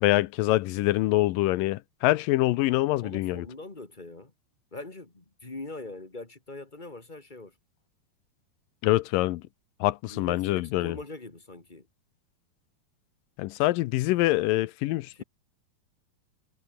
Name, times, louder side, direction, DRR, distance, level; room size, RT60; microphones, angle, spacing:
voice 1, 0.0-3.5 8.8-9.4 9.8-11.0 13.4-15.2, left 17 dB, 75° left, 2.2 m, -25 dB
voice 2, 3.0-4.3 4.7-7.5 10.1-11.9 15.2-15.3, left 2 dB, 15° left, 1.8 m, -42 dB
omnidirectional pair, 4.3 m